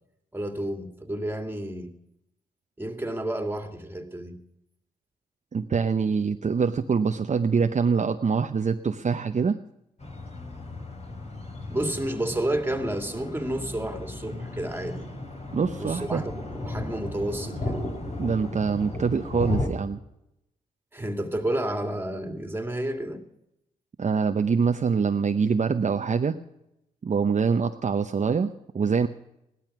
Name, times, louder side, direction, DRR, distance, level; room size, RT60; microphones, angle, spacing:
voice 1, 0.3-1.9 2.8-4.4 11.7-15.1 15.8-17.9 20.9-23.2, right 1 dB, 15° right, 2.3 m, -31 dB
voice 2, 5.5-9.6 15.5-16.2 18.2-20.0 24.0-26.4 27.0-29.1, right 5 dB, 45° right, 0.8 m, -24 dB
sound 1, 10.0-19.7, left 2 dB, 40° left, 3.3 m, -35 dB
16.5 x 12.0 x 6.0 m
cardioid pair, 60°, 17 cm